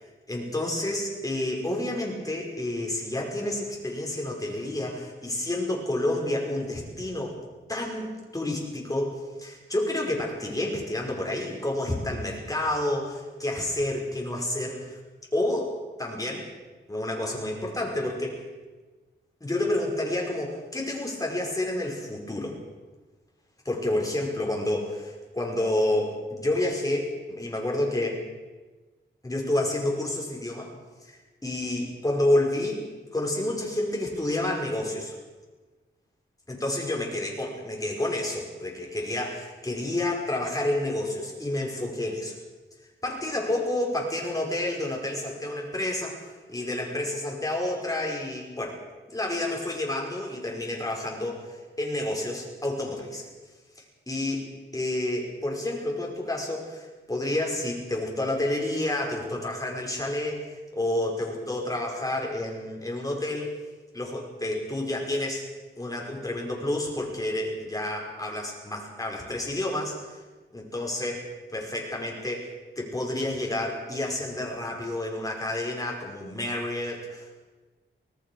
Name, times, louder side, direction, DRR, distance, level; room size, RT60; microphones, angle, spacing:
voice 1, 0.3-7.4 7.7-15.0 15.3-16.5 16.9-18.4 19.4-22.6 23.7-28.2 29.2-30.7 31.0-32.8 33.1-35.1 36.5-42.3 43.0-48.8 49.1-53.3 53.8-54.5 54.7-63.5 63.9-65.4 65.8-70.2 70.5-77.4, left 1 dB, 15° left, -1 dB, 5.3 m, -29 dB
25.0 x 18.0 x 6.4 m, 1.3 s
wide cardioid pair, 145°, 20 cm